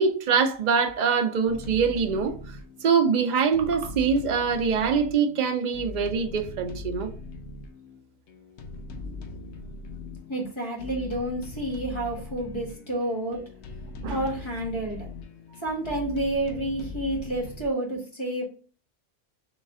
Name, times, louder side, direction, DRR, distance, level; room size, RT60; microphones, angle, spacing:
voice 1, 0.0-2.6 2.8-7.1 13.3-13.4 14.0-14.2, right 6 dB, 50° right, 0.6 m, -24 dB
sound 1, 1.5-17.7, left 3 dB, 70° left, 0.9 m, -40 dB
voice 2, 10.3-13.4 14.1-15.1 15.6-18.4, right 1 dB, 25° left, 1.5 m, -29 dB
4.1 x 3.2 x 3.6 m
omnidirectional pair, 1.2 m